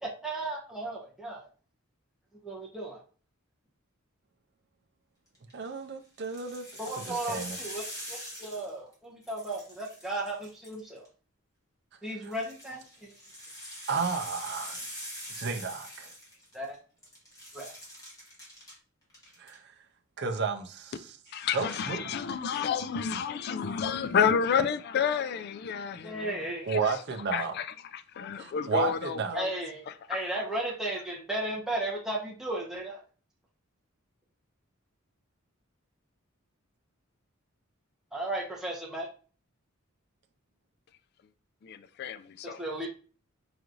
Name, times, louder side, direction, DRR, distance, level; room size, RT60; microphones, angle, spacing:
voice 1, 0.0-1.5 2.4-3.0 6.8-11.0 12.0-13.1 16.5-16.8 17.5-17.7 22.6-22.7 26.0-26.7 29.3-33.0 38.1-39.1 42.4-42.9, right 1 dB, ahead, 0.8 m, -35 dB
sound 1, 5.3-5.7 6.2-8.9 9.2-11.1 12.2-16.7 17.0-18.7 19.1-19.5, equal, 15° left, 1.5 m, -43 dB
voice 2, 5.5-6.7 7.0-7.6 12.2-12.3 13.9-14.8 15.3-16.1 19.4-19.7 20.2-21.1 21.5-22.2 26.7-27.5 28.4-29.4, right 5 dB, 55° right, 0.5 m, -32 dB
voice 3, 21.3-26.4 26.7-27.0 27.3-29.5 30.1-30.2 41.6-42.6, left 7 dB, 50° left, 0.3 m, -30 dB
4.9 x 3.0 x 2.5 m
head